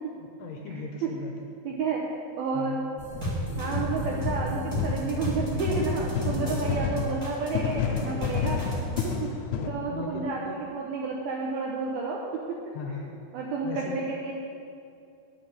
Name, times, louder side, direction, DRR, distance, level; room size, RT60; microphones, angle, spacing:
voice 1, 0.4-1.3 2.5-2.8 6.4-6.9 9.5-10.6 12.7-13.1 13.6-14.0, left 4 dB, 75° left, 2 dB, 2.6 m, -37 dB
voice 2, 1.6-2.0 2.4-2.9 3.6-8.6 9.0-9.3 9.7-12.6 13.3-14.3, right 4 dB, 80° right, -1 dB, 2.3 m, -31 dB
sound 1, 3.0-9.2, left 1 dB, 10° right, 1.4 m, -32 dB
sound 2, 4.8-5.3 5.7-9.7, left 7 dB, 90° left, 3.1 m, -30 dB
11.5 x 8.8 x 7.0 m, 2.6 s
omnidirectional pair, 5.6 m